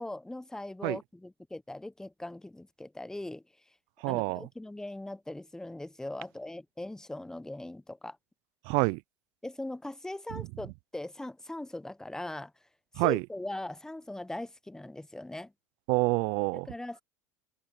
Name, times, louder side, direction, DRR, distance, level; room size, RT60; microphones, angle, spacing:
voice 1, 0.0-3.4 4.0-8.2 9.4-12.5 13.0-15.5 16.5-17.0, left 1 dB, 5° left, 1.0 m, -40 dB
voice 2, 4.0-4.4 8.7-9.0 10.3-10.4 13.0-13.2 15.9-16.7, right 28 dB, 65° right, 0.6 m, -27 dB
open air
hypercardioid pair, 85°, 9 cm